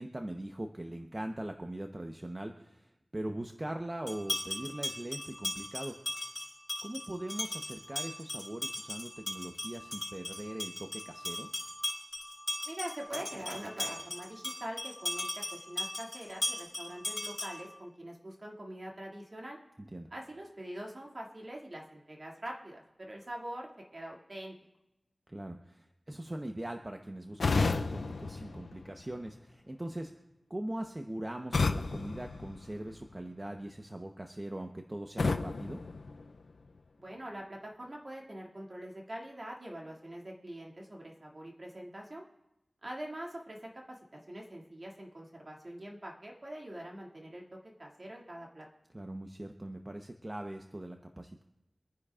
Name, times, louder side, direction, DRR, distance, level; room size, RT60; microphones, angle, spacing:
voice 1, 0.0-6.0 6.8-11.5 19.8-20.1 25.3-30.1 30.5-35.8 48.9-51.4, right 1 dB, 30° right, 4 dB, 0.9 m, -41 dB
sound 1, 4.1-17.7, left 1 dB, 35° left, 4.7 m, -38 dB
voice 2, 12.6-19.6 20.1-24.6 37.0-42.2 42.8-48.7, right 1 dB, 50° right, -2 dB, 2.3 m, -44 dB
sound 2, 27.4-29.4 31.5-33.2 35.2-36.8, left 3 dB, 90° left, 0.4 m, -33 dB
25.5 x 10.0 x 2.4 m, 0.94 s
cardioid pair, 45°, 0 cm